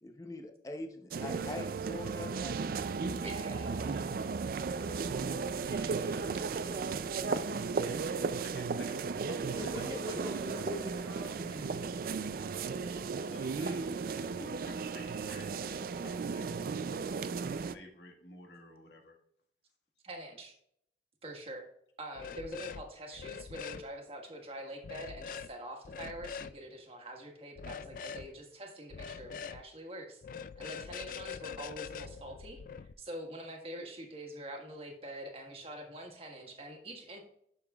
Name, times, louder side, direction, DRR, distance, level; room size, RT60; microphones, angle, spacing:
voice 1, 0.0-3.3, left 2 dB, 20° left, 5 dB, 0.7 m, -44 dB
sound 1, 1.1-17.7, right 5 dB, 55° right, 0.4 m, -35 dB
voice 2, 3.2-4.0 5.8-6.2 20.0-20.6 21.2-21.6 22.0-30.2 30.6-32.6 33.0-37.2, right 1 dB, 35° right, 2 dB, 1.5 m, -45 dB
voice 3, 5.0-8.2 9.5-12.0, equal, 15° right, -2 dB, 1.9 m, -44 dB
voice 4, 8.4-10.0 13.2-19.2, left 1 dB, 80° left, 2 dB, 1.7 m, -53 dB
sound 2, 22.2-22.8 23.1-23.8 24.8-25.5 25.9-26.5 27.6-28.3 28.9-29.6 30.2-32.9, left 6 dB, 50° left, 0.3 m, -43 dB
10.5 x 6.8 x 2.3 m, 0.70 s
head